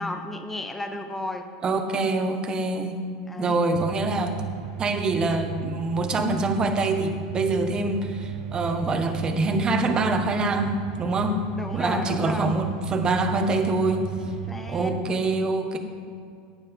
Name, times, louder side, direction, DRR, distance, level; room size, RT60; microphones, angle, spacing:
voice 1, 0.0-1.5 3.3-3.6 11.5-12.5 14.2-15.0, left 2 dB, 10° left, 5 dB, 0.8 m, -34 dB
voice 2, 1.6-3.1 3.4-4.4 4.8-11.4 11.7-14.0 14.7-15.8, right 2 dB, 25° right, 6 dB, 1.2 m, -25 dB
sound 1, 3.7-15.0, right 9 dB, 80° right, 0.9 m, -35 dB
15.5 x 9.9 x 3.6 m, 2.3 s
supercardioid pair, 130°, 3 cm